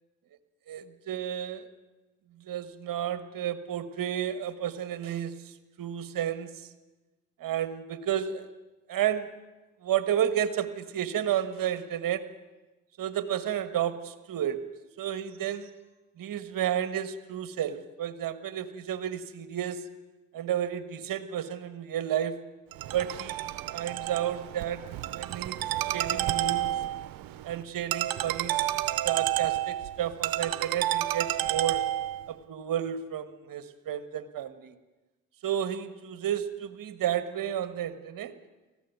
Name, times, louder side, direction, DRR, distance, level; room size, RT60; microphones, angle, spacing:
voice 1, 0.7-1.7 2.4-5.3 5.8-6.5 7.4-8.5 8.9-9.2 9.8-12.2 13.0-14.6 15.0-15.7 16.2-19.8 20.3-22.4 22.9-25.6 25.8-26.7 27.4-28.6 29.0-31.8 32.3-34.7 35.4-38.3, right 10 dB, 70° right, 12 dB, 1.5 m, -31 dB
Ringtone, 22.7-32.3, right 14 dB, 90° right, 0.9 m, -30 dB
19.0 x 15.0 x 9.4 m, 1.1 s
supercardioid pair, 55°, 34 cm